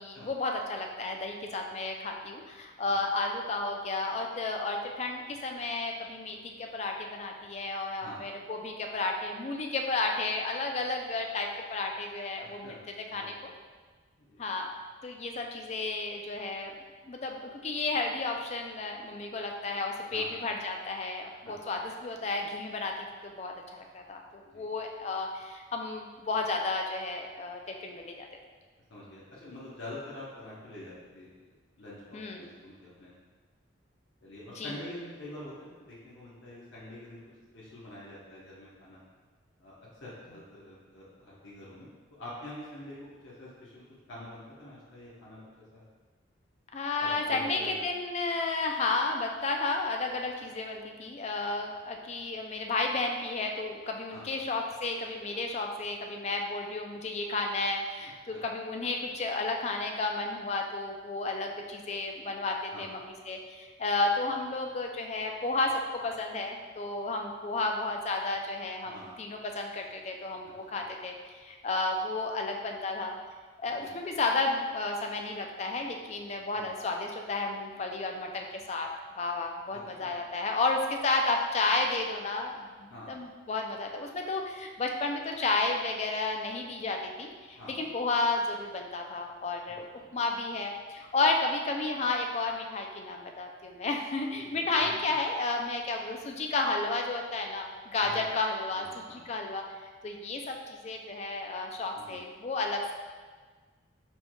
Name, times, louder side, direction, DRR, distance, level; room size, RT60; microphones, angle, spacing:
voice 1, 0.0-12.8 13.1-13.5 14.4-14.7 15.0-16.7 17.1-28.3 32.1-32.5 34.6-34.7 46.7-73.2 73.6-78.9 79.2-89.8 90.1-102.9, left 3 dB, 35° left, 2 dB, 0.4 m, -32 dB
voice 2, 8.0-8.3 12.4-12.8 13.1-13.5 14.2-14.4 20.1-20.4 21.4-21.5 24.4-24.7 28.9-31.3 31.8-33.1 34.2-37.2 37.5-39.0 39.6-45.4 45.7-45.8 47.0-47.9 54.1-54.4 58.3-58.4 62.7-62.9 68.8-69.2 70.4-70.5 73.8-73.9 76.5-76.7 79.7-80.1 82.9-83.3 87.6-87.9 89.9-90.0 94.3-94.9 98.0-98.3 98.7-99.2 101.9-102.2, left 1 dB, 65° left, -8 dB, 0.9 m, -46 dB
4.5 x 4.4 x 2.2 m, 1.4 s
head